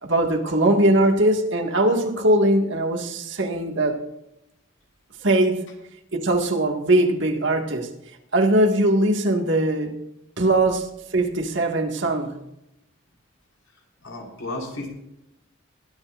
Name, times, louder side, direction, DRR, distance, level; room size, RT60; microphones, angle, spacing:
voice 1, 0.0-4.0 5.2-5.7 6.1-7.9 8.3-10.0 10.4-12.4, right 1 dB, 60° right, 3 dB, 2.0 m, -21 dB
voice 2, 14.0-14.9, left 2 dB, 70° left, -1 dB, 5.5 m, -33 dB
22.0 x 13.0 x 2.6 m, 0.85 s
head